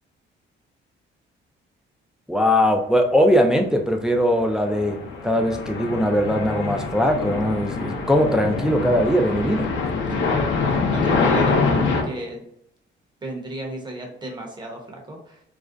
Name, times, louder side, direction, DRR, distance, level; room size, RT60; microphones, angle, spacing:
voice 1, 2.3-9.7, equal, 5° right, 3 dB, 0.3 m, -20 dB
sound 1, 4.2-12.0, left 4 dB, 75° left, 0.5 m, -25 dB
voice 2, 10.1-10.4 10.9-12.4 13.2-15.4, right 1 dB, 20° right, 0 dB, 0.7 m, -33 dB
2.4 x 2.0 x 2.5 m, 0.73 s
cardioid pair, 90°, 20 cm